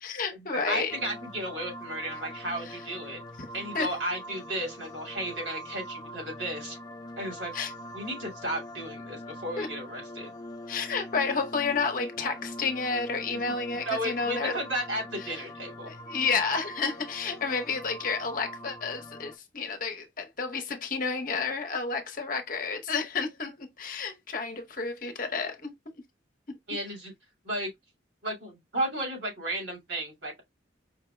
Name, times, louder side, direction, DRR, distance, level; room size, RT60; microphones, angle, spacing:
voice 1, 0.0-1.0 2.6-2.8 3.4-3.5 3.7-3.9 7.5-7.7 9.6-9.7 10.7-14.6 15.2-15.4 15.9-25.7 26.5-26.6, left 4 dB, 45° left, 0.8 m, -31 dB
voice 2, 0.6-3.2 3.5-6.8 7.2-7.5 7.9-10.3 13.9-15.9 26.7-27.1 27.4-27.7 28.2-30.5, right 1 dB, 75° right, 2.3 m, -34 dB
sound 1, 0.9-19.4, equal, 20° left, 0.5 m, -43 dB
5.0 x 2.1 x 3.2 m
head